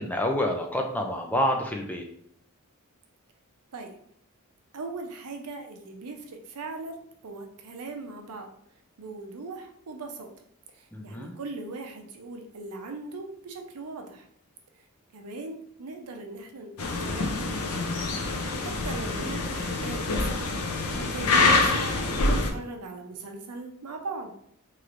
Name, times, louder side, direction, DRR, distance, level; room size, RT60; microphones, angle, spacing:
voice 1, 0.0-2.1 10.9-11.3 20.9-21.1 21.5-21.6, left 1 dB, 5° left, 2 dB, 0.3 m, -28 dB
voice 2, 4.7-7.0 7.2-8.5 9.0-10.3 11.0-14.2 15.1-17.9 18.6-20.4 20.8-24.3, right 3 dB, 90° right, 4 dB, 0.6 m, -39 dB
sound 1, 16.8-22.5, left 3 dB, 80° left, 0.5 m, -26 dB
3.2 x 3.0 x 2.5 m, 0.68 s
head